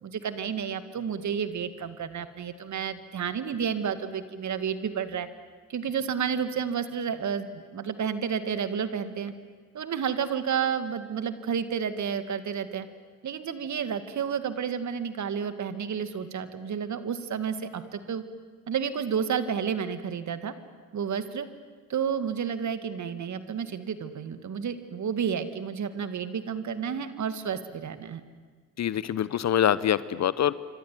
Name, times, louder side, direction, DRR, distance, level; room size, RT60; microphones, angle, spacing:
voice 1, 0.0-5.3 5.7-9.3 9.7-12.9 13.2-18.2 18.7-20.5 20.9-21.5 21.9-28.2, right 7 dB, 40° right, 11 dB, 2.0 m, -31 dB
voice 2, 28.8-30.5, left 10 dB, 40° left, 17 dB, 0.9 m, -25 dB
27.0 x 25.5 x 7.8 m, 1.5 s
hypercardioid pair, 60°, 42 cm